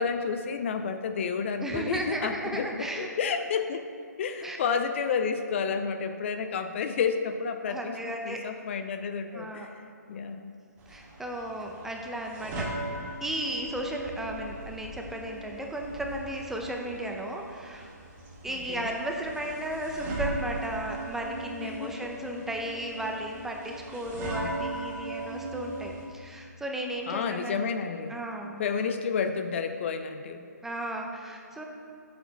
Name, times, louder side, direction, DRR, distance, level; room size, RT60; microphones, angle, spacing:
voice 1, 0.0-3.8 4.2-10.5 18.5-18.9 21.6-22.0 24.2-24.6 27.1-28.2 28.6-30.5, left 6 dB, 45° left, 8 dB, 0.5 m, -31 dB
voice 2, 1.6-3.1 4.4-4.6 7.7-8.4 9.3-9.7 10.9-12.7 13.2-17.9 18.4-27.6 28.1-28.6 30.6-31.6, right 1 dB, 5° right, 1 dB, 0.7 m, -35 dB
sound 1, 10.8-26.1, right 1 dB, 20° right, 2.1 m, -39 dB
10.0 x 7.8 x 4.0 m, 2.4 s
hypercardioid pair, 145°, 10 cm